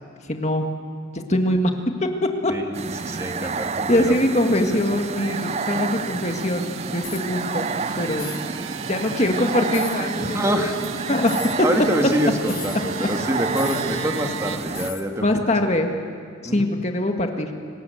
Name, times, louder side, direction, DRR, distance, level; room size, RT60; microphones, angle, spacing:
voice 1, 0.3-0.7 1.1-1.7 2.4-2.5 3.9-6.7 6.9-7.7 8.0-8.3 8.9-10.7 11.1-11.3 15.2-15.9 16.4-17.5, left 1 dB, 35° left, 4 dB, 1.9 m, -22 dB
voice 2, 2.5-4.2 4.7-4.8 10.2-10.8 11.6-15.3 16.4-16.7, equal, 15° right, 3 dB, 1.9 m, -26 dB
sound 1, 2.7-14.9, right 4 dB, 30° right, 0.6 m, -29 dB
sound 2, 4.6-14.6, right 5 dB, 80° right, 1.3 m, -38 dB
sound 3, 7.0-7.3 8.1-8.4 9.7-10.0 11.2-11.6 12.5-12.8 13.5-13.9 14.7-15.1, left 12 dB, 80° left, 2.9 m, -37 dB
30.0 x 19.5 x 8.0 m, 2.3 s
head